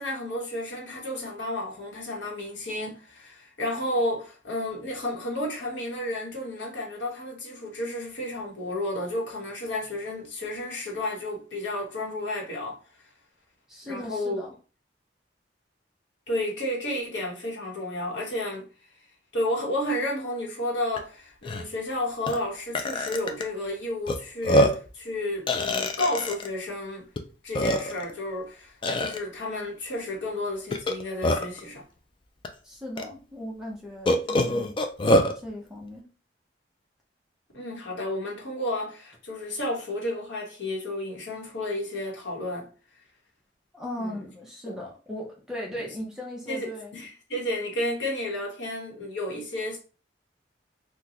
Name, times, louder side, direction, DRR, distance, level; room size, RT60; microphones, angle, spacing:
voice 1, 0.0-12.8 13.8-14.4 16.3-18.6 19.3-27.1 27.4-31.8 37.5-42.7 43.9-44.2 44.7-44.8 46.5-49.8, left 1 dB, 80° left, 1.1 m, -32 dB
voice 2, 13.7-14.5 32.6-34.8 35.3-36.1 43.7-46.9, left 1 dB, 5° right, 0.7 m, -37 dB
Burping eructation, 21.0-21.1 21.4-21.6 22.3-22.4 22.7-23.4 24.1-24.2 24.4-24.9 25.5-26.5 27.2-27.3 27.5-28.1 28.8-29.2 30.7-31.6 32.4-32.5 33.0-33.1 34.1-35.3, left 1 dB, 25° left, 0.3 m, -24 dB
3.7 x 2.2 x 2.9 m
head